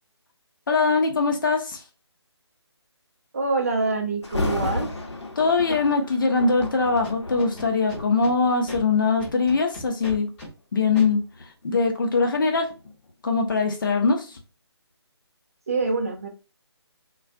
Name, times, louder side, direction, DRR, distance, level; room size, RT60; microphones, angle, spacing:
voice 1, 0.7-1.8 5.4-10.3 10.7-12.7 13.2-14.4, left 4 dB, 50° left, 3 dB, 0.7 m, -22 dB
voice 2, 3.3-4.9 15.7-16.3, right 3 dB, 30° right, 4 dB, 0.4 m, -25 dB
Thunder, 4.2-9.2 9.9-10.1 10.7-13.5 13.9-14.0, left 2 dB, 80° left, 0.8 m, -33 dB
Scratching (performance technique), 7.0-8.3 8.7-8.8 9.2-10.5 11.0-11.1, left 1 dB, 20° left, 0.8 m, -38 dB
2.4 x 2.2 x 2.5 m, 0.32 s
figure-of-eight pair, 155°, 15 cm